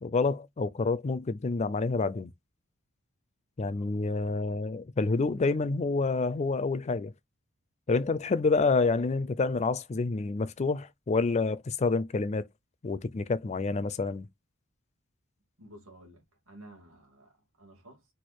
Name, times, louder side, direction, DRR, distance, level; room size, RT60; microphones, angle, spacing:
voice 1, 0.0-2.3 3.6-7.1 7.9-12.4 12.8-14.3, left 3 dB, 30° left, 0.4 m, -28 dB
voice 2, 3.7-4.2 15.6-18.1, right 1 dB, 70° right, 2.5 m, -53 dB
4.6 x 2.5 x 4.3 m
head